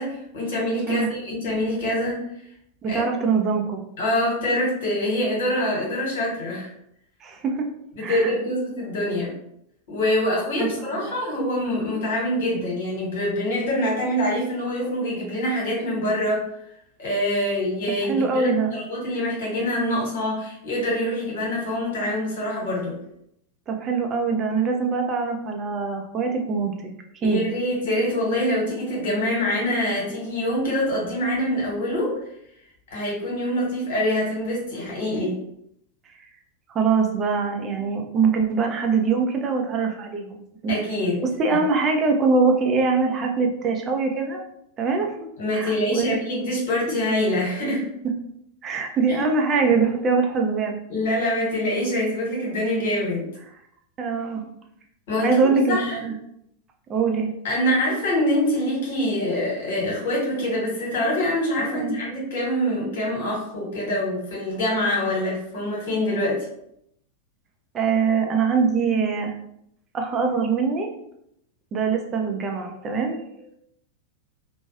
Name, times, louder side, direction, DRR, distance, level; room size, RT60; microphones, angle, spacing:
voice 1, 0.0-2.2 2.9-3.0 4.0-6.7 7.9-9.3 9.9-16.4 17.0-23.0 27.2-32.1 32.9-35.3 40.7-41.2 41.5-41.6 45.4-47.8 49.1-49.2 50.9-53.3 55.1-56.0 57.4-66.5, left 1 dB, 55° left, -3 dB, 1.5 m, -25 dB
voice 2, 2.8-3.8 7.2-7.7 8.0-8.3 10.6-10.7 10.9-11.2 18.0-18.7 23.7-26.7 27.2-27.5 36.7-40.7 41.2-44.4 44.8-45.3 45.5-46.2 48.6-50.8 54.0-54.5 55.2-56.2 56.9-57.3 61.6-62.0 67.7-69.3 69.9-70.9 71.7-73.2, right 4 dB, 25° right, 2 dB, 0.5 m, -23 dB
3.0 x 2.2 x 2.7 m, 0.75 s
figure-of-eight pair, 90°, 0 cm